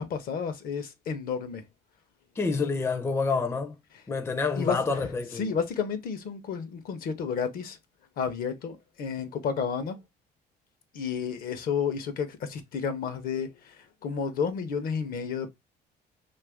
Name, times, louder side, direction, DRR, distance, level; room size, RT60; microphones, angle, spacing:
voice 1, 0.0-1.6 4.6-4.8 5.3-7.8 8.2-10.0 10.9-15.5, left 6 dB, 60° left, 0.6 m, -31 dB
voice 2, 2.4-3.7 4.1-5.5, left 4 dB, 15° left, 0.4 m, -28 dB
2.7 x 2.4 x 3.4 m
cardioid pair, 110°, 17 cm